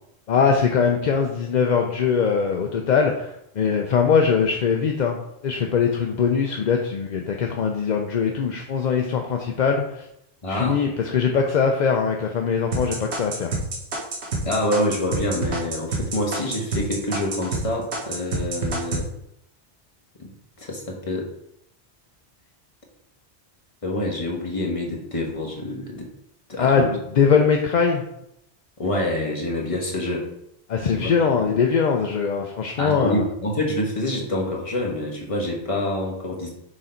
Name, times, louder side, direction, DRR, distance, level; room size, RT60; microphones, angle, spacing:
voice 1, 0.3-10.1 10.5-13.5 26.6-28.0 30.7-33.2, left 6 dB, 50° left, 3 dB, 0.6 m, -21 dB
voice 2, 10.4-10.8 14.5-19.1 20.2-20.3 20.6-21.3 23.8-26.1 26.5-27.0 28.8-30.3 30.9-31.5 32.8-36.5, left 1 dB, 30° left, -1 dB, 1.3 m, -26 dB
sound 1, 12.7-17.6 17.9-19.0, right 2 dB, 75° right, 1.5 m, -27 dB
6.4 x 3.9 x 4.3 m, 0.79 s
omnidirectional pair, 1.1 m